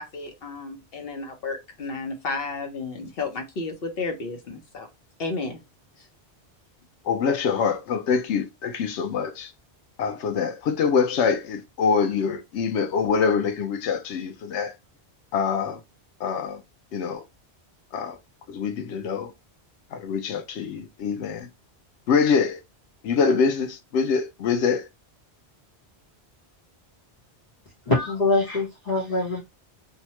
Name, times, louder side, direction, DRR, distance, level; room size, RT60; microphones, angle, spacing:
voice 1, 0.0-4.9 5.2-5.6, left 3 dB, 60° left, 1.0 m, -32 dB
voice 2, 7.1-9.5 10.0-14.7 15.3-15.8 16.2-16.6 16.9-17.2 17.9-18.2 18.5-19.3 19.9-21.5 22.1-22.6 23.0-24.8, left 6 dB, 90° left, 0.9 m, -24 dB
voice 3, 27.9-29.4, left 2 dB, 40° left, 1.0 m, -23 dB
2.8 x 2.2 x 2.8 m
omnidirectional pair, 1.1 m